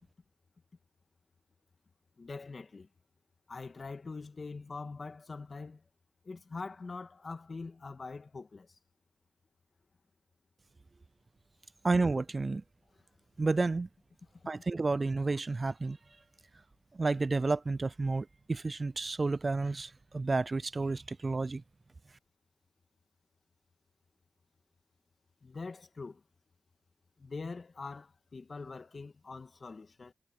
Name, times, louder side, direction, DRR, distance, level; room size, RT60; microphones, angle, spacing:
voice 1, 2.2-2.9 3.5-5.8 6.2-8.8 14.3-14.5 15.3-15.4 25.4-26.2 27.2-30.1, left 4 dB, 50° left, 1.7 m, -43 dB
voice 2, 11.8-12.6 13.4-13.9 14.5-16.0 16.9-21.6, right 3 dB, 40° right, 0.4 m, -31 dB
cardioid pair, 55°, 0 cm